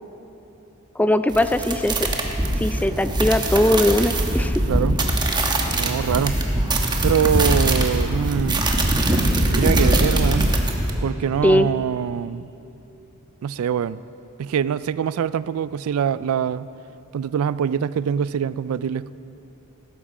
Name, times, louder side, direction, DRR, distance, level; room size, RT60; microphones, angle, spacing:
voice 1, 1.0-2.1 2.6-4.6 11.4-11.7, left 1 dB, 5° left, 11 dB, 0.3 m, -20 dB
sound 1, 1.3-10.9, right 1 dB, 20° right, 1.1 m, -22 dB
sound 2, 1.9-11.8, equal, 55° left, 3.2 m, -39 dB
voice 2, 4.7-5.0 5.7-6.4 7.0-8.6 9.5-10.5 11.0-12.5 13.4-14.0 14.4-16.7 17.1-19.1, right 8 dB, 70° right, 17 dB, 0.3 m, -24 dB
16.5 x 13.0 x 4.9 m, 2.9 s
head